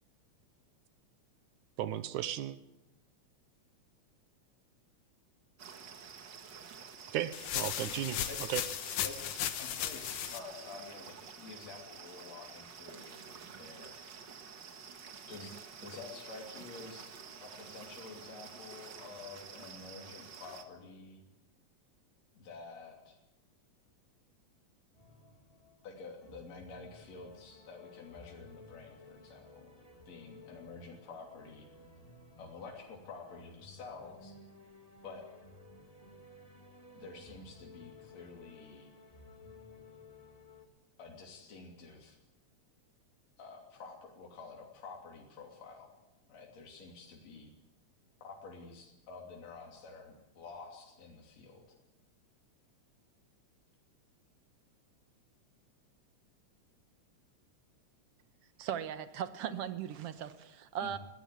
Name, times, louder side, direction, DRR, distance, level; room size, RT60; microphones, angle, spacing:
voice 1, 1.8-2.6 7.1-8.6, right 12 dB, 85° right, 13 dB, 2.4 m, -35 dB
sound 1, 5.6-20.6, right 6 dB, 45° right, 1.8 m, -50 dB
sound 2, 7.3-10.4, left 11 dB, 85° left, 2.6 m, -36 dB
voice 2, 9.0-13.9 15.3-21.2 22.4-23.2 25.8-29.7 30.1-31.7 32.4-34.3 35.0-35.3 36.9-38.9 41.0-42.2 43.4-45.9 46.3-47.5 48.2-51.7 60.8-61.0, left 4 dB, 60° left, 0 dB, 4.2 m, -49 dB
sound 3, 24.9-40.7, left 2 dB, 10° left, 2.4 m, -56 dB
voice 3, 58.6-61.0, right 9 dB, 60° right, 11 dB, 1.8 m, -38 dB
21.0 x 16.0 x 8.5 m, 0.94 s
omnidirectional pair, 3.4 m